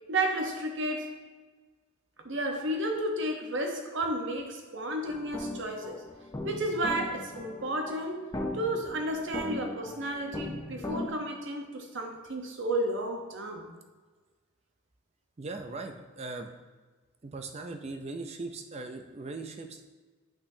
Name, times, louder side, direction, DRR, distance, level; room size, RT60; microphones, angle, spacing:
voice 1, 0.1-1.2 2.2-6.0 6.4-8.2 8.5-13.7, right 1 dB, 60° right, 3 dB, 0.9 m, -32 dB
sound 1, 5.1-11.1, left 1 dB, 15° left, 0.6 m, -39 dB
voice 2, 15.4-16.5 17.2-19.8, right 3 dB, 30° right, 6 dB, 0.4 m, -39 dB
8.2 x 5.9 x 2.7 m, 1.3 s
head